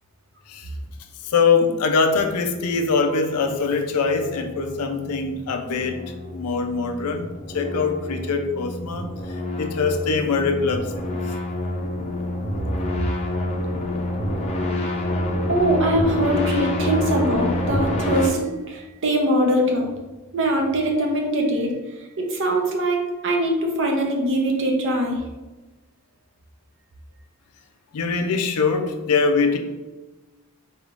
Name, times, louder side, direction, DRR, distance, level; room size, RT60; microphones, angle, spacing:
voice 1, 1.2-6.0 6.3-11.2 27.9-29.6, left 4 dB, 90° left, 6 dB, 0.5 m, -23 dB
sound 1, 3.7-18.3, left 1 dB, 30° left, 0.6 m, -28 dB
voice 2, 15.5-19.9 20.3-21.8 22.2-25.2, right 1 dB, 55° right, 1 dB, 0.7 m, -22 dB
4.2 x 3.6 x 2.4 m, 1.2 s
head